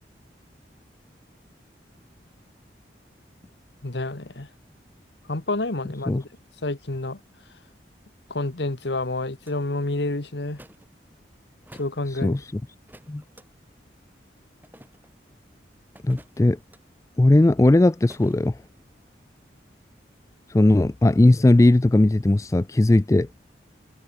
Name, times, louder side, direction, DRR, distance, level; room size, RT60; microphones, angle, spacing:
voice 1, 3.8-4.5 5.3-6.2 6.6-7.2 8.3-10.6 11.7-12.4, left 2 dB, 75° left, 1.5 m, -29 dB
sound 1, 9.5-9.6 10.5-10.9 11.7-12.0 12.9-13.5 14.6-15.1 16.0-16.8 18.1-18.4, right 1 dB, 10° right, 6.2 m, -49 dB
voice 2, 16.0-16.6 17.2-18.5 20.5-23.3, left 2 dB, 15° left, 0.3 m, -18 dB
head